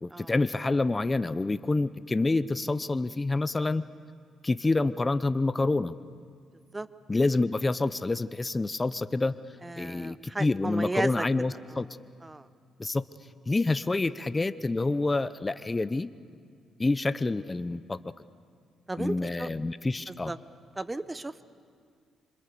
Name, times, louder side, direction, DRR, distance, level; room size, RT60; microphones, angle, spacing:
voice 1, 0.0-3.8 4.4-5.9 7.1-9.3 9.8-11.9 12.8-13.0 13.5-16.1 16.8-18.0 19.0-20.3, left 2 dB, 20° left, 14 dB, 0.6 m, -27 dB
voice 2, 9.6-11.2 11.7-11.8 12.2-12.5 18.9-19.5 20.3-20.4 20.8-21.5, right 2 dB, 15° right, 14 dB, 0.8 m, -34 dB
26.5 x 26.5 x 6.8 m, 2.1 s
cardioid pair, 90°, 0 cm